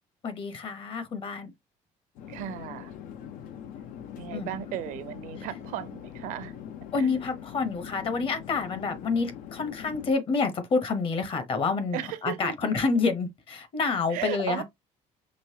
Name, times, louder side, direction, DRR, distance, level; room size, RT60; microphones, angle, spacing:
voice 1, 0.2-1.5 4.3-4.5 5.4-5.5 6.9-14.6, left 4 dB, 40° left, 1.1 m, -28 dB
Conversation / Chatter / Fixed-wing aircraft airplane, 2.2-10.1, left 9 dB, 75° left, 0.8 m, -42 dB
voice 2, 2.3-2.9 4.2-6.5 6.9-7.2 11.9-12.5 14.1-14.6, right 12 dB, 75° right, 0.8 m, -35 dB
5.3 x 3.1 x 2.8 m
cardioid pair, 140°, 14 cm